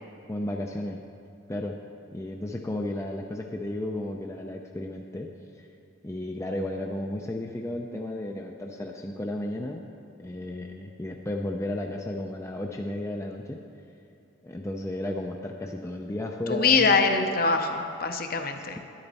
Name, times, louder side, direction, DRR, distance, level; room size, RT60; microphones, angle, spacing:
voice 1, 0.3-1.0 1.5-1.8 2.1-5.3 5.6-5.7 6.0-9.8 10.2-13.6 14.4-17.0, left 1 dB, 15° left, 1 dB, 0.4 m, -33 dB
voice 2, 16.5-18.8, left 4 dB, 45° left, 5 dB, 0.7 m, -23 dB
11.0 x 10.0 x 4.1 m, 2.6 s
head